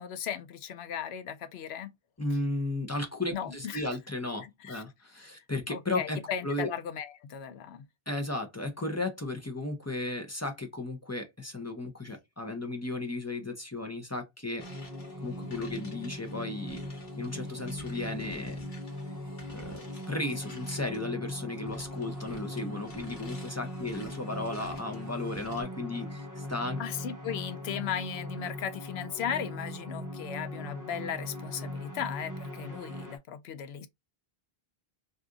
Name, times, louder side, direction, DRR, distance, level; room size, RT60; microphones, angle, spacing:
voice 1, 0.0-1.9 3.3-3.8 4.4-4.8 5.7-7.8 26.8-33.9, left 8 dB, 85° left, 0.8 m, -36 dB
voice 2, 2.2-6.2 6.4-6.7 8.1-14.6 15.2-16.8 17.2-18.6 19.5-19.8 20.1-26.8, left 2 dB, 20° left, 0.5 m, -35 dB
sound 1, 14.6-21.1 21.5-25.6, left 1 dB, 50° left, 1.2 m, -52 dB
sound 2, 14.6-33.2, left 1 dB, 20° right, 0.6 m, -40 dB
2.7 x 2.4 x 3.6 m
omnidirectional pair, 1.0 m